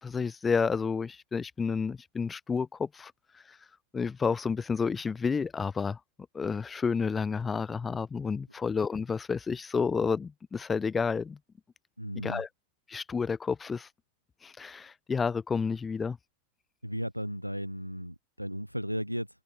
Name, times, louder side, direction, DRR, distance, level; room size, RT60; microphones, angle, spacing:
voice 1, 0.0-3.6 3.9-6.0 6.3-11.4 12.2-12.5 12.9-13.9 14.4-16.2, left 5 dB, 15° left, 0.5 m, -30 dB
voice 2, 12.0-12.4 16.8-19.3, equal, 90° right, 0.7 m, -35 dB
figure-of-eight pair, 90°, 0 cm